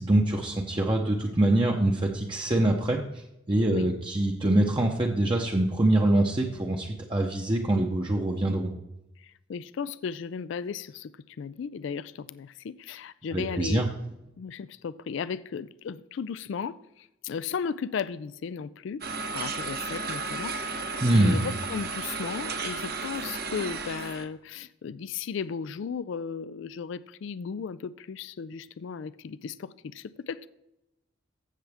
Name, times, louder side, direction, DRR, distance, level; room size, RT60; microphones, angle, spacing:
voice 1, 0.0-8.7 13.3-13.9 21.0-21.4, right 1 dB, 25° right, 0.8 m, -24 dB
voice 2, 9.2-13.8 14.4-19.1 19.3-20.6 21.1-30.5, left 6 dB, 60° left, 0.3 m, -35 dB
sound 1, 19.0-24.2, right 4 dB, 45° right, 1.0 m, -34 dB
15.0 x 7.0 x 3.5 m
head